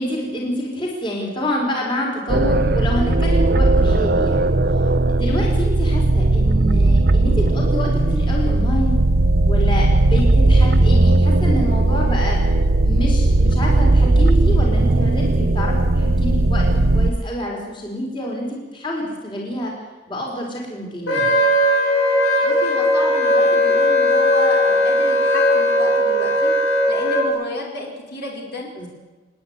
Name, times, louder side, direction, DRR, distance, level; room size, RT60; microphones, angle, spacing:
voice 1, 0.0-4.6 5.1-9.0 9.5-12.4 12.8-19.7 20.1-21.3 28.7-28.9, equal, 25° left, -1 dB, 4.9 m, -27 dB
sound 1, 2.3-17.1, right 2 dB, 55° right, 0.9 m, -17 dB
Wind instrument woodwind instrument, 21.1-27.2, left 1 dB, 90° left, 5.2 m, -17 dB
voice 2, 22.4-28.7, left 1 dB, 55° left, -1 dB, 5.1 m, -31 dB
28.5 x 10.0 x 9.7 m, 1.2 s
head